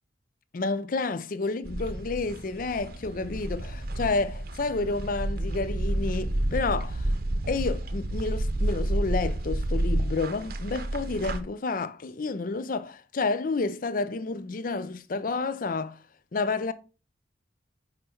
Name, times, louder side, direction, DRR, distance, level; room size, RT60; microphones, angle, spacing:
voice 1, 0.5-7.1 7.5-16.0 16.3-16.7, left 3 dB, 50° left, 0.5 m, -30 dB
sound 1, 1.6-11.4, right 1 dB, 55° right, 0.8 m, -30 dB
5.7 x 5.2 x 4.4 m
head